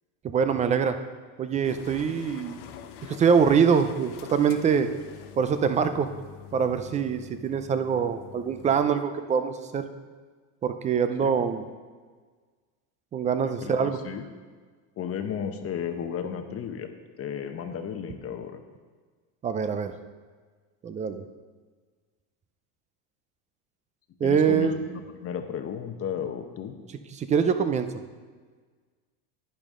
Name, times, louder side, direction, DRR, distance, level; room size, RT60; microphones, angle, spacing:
voice 1, 0.2-1.0 1.4-2.6 3.1-4.9 5.4-6.1 6.5-9.9 10.6-11.6 13.1-14.0 19.4-19.9 20.8-21.2 24.2-24.8 27.1-27.9, right 6 dB, 20° right, 10 dB, 0.3 m, -24 dB
sound 1, 1.6-8.9, left 9 dB, 70° left, 1.0 m, -45 dB
voice 2, 13.4-14.2 15.0-16.9 17.2-18.6 24.2-26.7, left 8 dB, 30° left, 7 dB, 0.8 m, -34 dB
10.5 x 10.5 x 3.7 m, 1.5 s
supercardioid pair, 125°, 45 cm